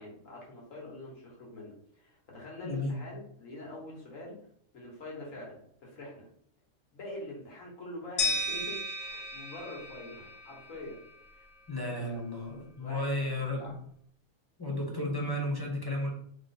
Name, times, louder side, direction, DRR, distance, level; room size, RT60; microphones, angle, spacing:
voice 1, 0.0-4.4 4.7-6.3 6.9-11.0 11.3-11.5 11.9-13.8, left 1 dB, 75° left, -3 dB, 1.8 m, -45 dB
voice 2, 2.6-3.0 11.7-13.8 14.6-16.1, left 1 dB, 20° left, -1 dB, 0.7 m, -33 dB
sound 1, 8.2-11.1, left 1 dB, 50° left, 0.4 m, -34 dB
3.2 x 3.2 x 4.2 m, 0.65 s
omnidirectional pair, 1.4 m